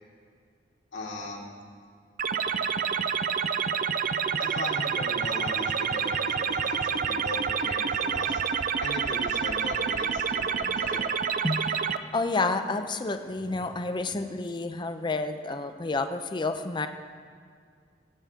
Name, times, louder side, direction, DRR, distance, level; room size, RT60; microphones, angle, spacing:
voice 1, 0.9-1.5 4.4-11.0, left 2 dB, 70° left, -3 dB, 2.4 m, -38 dB
sound 1, 2.2-12.0, right 7 dB, 45° right, 0.4 m, -28 dB
voice 2, 12.1-16.9, left 3 dB, 25° left, 8 dB, 0.5 m, -29 dB
20.0 x 8.7 x 3.6 m, 2.1 s
head